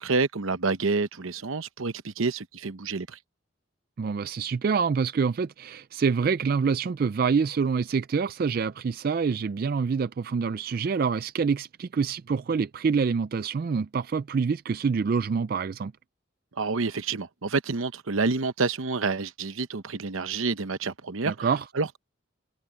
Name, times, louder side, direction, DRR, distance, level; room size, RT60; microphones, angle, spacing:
voice 1, 0.0-3.2 16.6-21.5 21.7-22.0, right 4 dB, 75° right, 0.9 m, -28 dB
voice 2, 4.0-15.9 21.2-21.6, right 5 dB, 45° right, 0.3 m, -26 dB
head